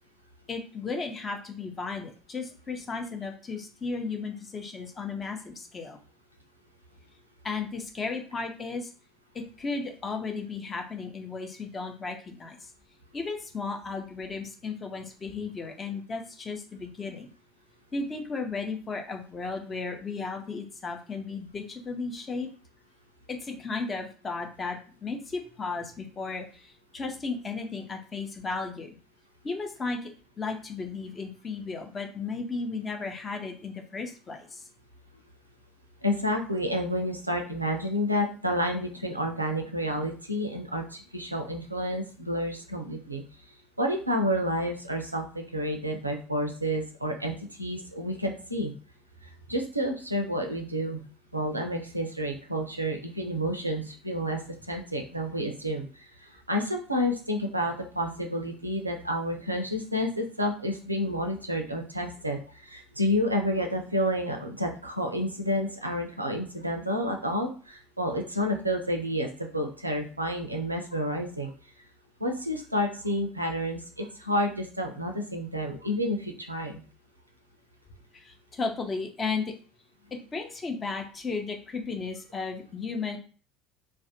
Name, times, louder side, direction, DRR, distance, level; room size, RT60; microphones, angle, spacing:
voice 1, 0.5-6.0 7.4-8.9 9.3-12.6 13.1-17.3 17.9-22.5 23.3-29.0 29.4-30.1 30.4-34.6 78.1-79.5 80.3-83.2, left 4 dB, 30° left, 4 dB, 0.6 m, -34 dB
voice 2, 36.0-43.2 43.8-48.7 49.2-51.0 51.3-54.4 54.7-71.5 72.2-76.8, equal, 90° right, 3 dB, 0.4 m, -30 dB
2.4 x 2.1 x 2.8 m, 0.38 s
figure-of-eight pair, 65°, 0 cm